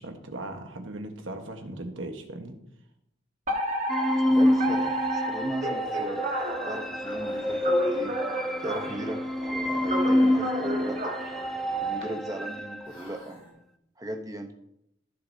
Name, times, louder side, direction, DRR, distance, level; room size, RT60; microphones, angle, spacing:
voice 1, 0.0-2.6, right 1 dB, 85° right, 5 dB, 1.3 m, -38 dB
Alarm, 3.5-12.0, right 1 dB, 40° right, 1.3 m, -32 dB
sound 1, 3.9-12.9, left 1 dB, ahead, 0.4 m, -27 dB
sound 2, 4.3-5.1 5.4-5.5 5.8-6.0 6.3-8.9 9.6-12.2 12.5-12.6 12.8-13.5, left 1 dB, 25° left, 3.6 m, -51 dB
voice 2, 4.3-6.3 6.6-8.2 8.6-11.1 11.8-13.4 14.0-14.5, right 1 dB, 20° right, 4 dB, 0.8 m, -37 dB
15.0 x 6.7 x 2.7 m, 0.79 s
head